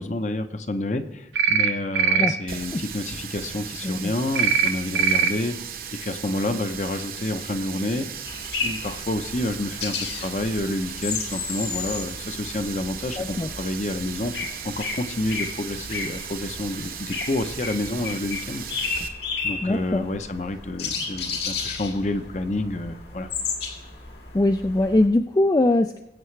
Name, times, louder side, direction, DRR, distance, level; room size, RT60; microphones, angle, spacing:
voice 1, 0.0-5.6 6.0-8.1 8.6-14.3 14.6-18.9 19.4-23.3, left 1 dB, 40° left, 9 dB, 0.8 m, -29 dB
sound 1, 1.3-1.7 1.9-2.3 4.3-4.7 4.9-5.3, right 7 dB, 85° right, 1.0 m, -20 dB
Water tap faucet, 2.5-19.1, right 7 dB, 50° right, 0.9 m, -37 dB
sound 2, 8.3-25.1, left 4 dB, 65° left, 2.0 m, -33 dB
voice 2, 13.2-13.5 19.6-20.0 24.3-26.0, left 2 dB, 20° left, 7 dB, 0.3 m, -21 dB
20.5 x 8.4 x 3.3 m, 0.84 s
head